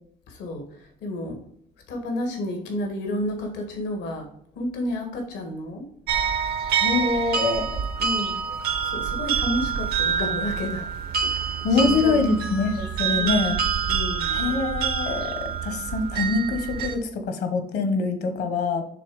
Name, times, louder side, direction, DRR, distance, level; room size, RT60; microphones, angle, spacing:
voice 1, 0.3-1.4 1.9-4.3 4.6-5.9 8.0-8.4 8.8-10.9 11.2-12.4 13.1-14.4, left 1 dB, 85° left, 4 dB, 1.7 m, -31 dB
sound 1, 6.1-17.0, right 7 dB, 70° right, 0.9 m, -26 dB
voice 2, 6.8-7.7 11.6-13.6 14.3-18.8, left 4 dB, 70° left, 8 dB, 1.3 m, -24 dB
6.9 x 3.4 x 4.9 m, 0.67 s
cardioid pair, 110°, 17 cm